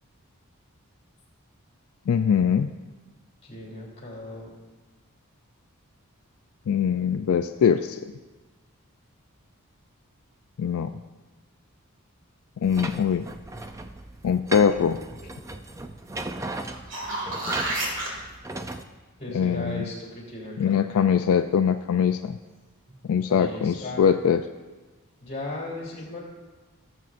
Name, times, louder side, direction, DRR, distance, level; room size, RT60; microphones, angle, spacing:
voice 1, 2.1-2.7 6.7-8.0 10.6-10.9 12.6-13.3 14.2-15.0 19.3-19.8 20.6-22.4 23.1-24.4, left 7 dB, 75° left, 8 dB, 0.3 m, -22 dB
voice 2, 3.4-4.5 19.2-20.8 23.3-24.1 25.2-26.2, left 1 dB, 30° left, -4 dB, 3.0 m, -36 dB
sound 1, 12.6-18.8, right 2 dB, 15° right, 0.3 m, -37 dB
sound 2, 16.6-18.1 22.9-23.0, right 2 dB, 55° right, 2.1 m, -30 dB
17.5 x 7.4 x 2.5 m, 1.2 s
head